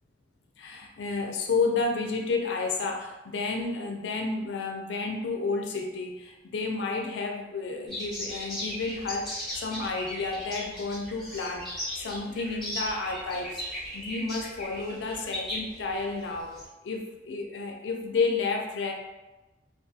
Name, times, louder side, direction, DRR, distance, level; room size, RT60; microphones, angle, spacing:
voice 1, 0.6-16.5 16.8-18.9, left 4 dB, 75° left, 2 dB, 0.4 m, -31 dB
sound 1, 7.9-16.6, equal, ahead, 0.9 m, -38 dB
2.4 x 2.3 x 2.6 m, 1.1 s
head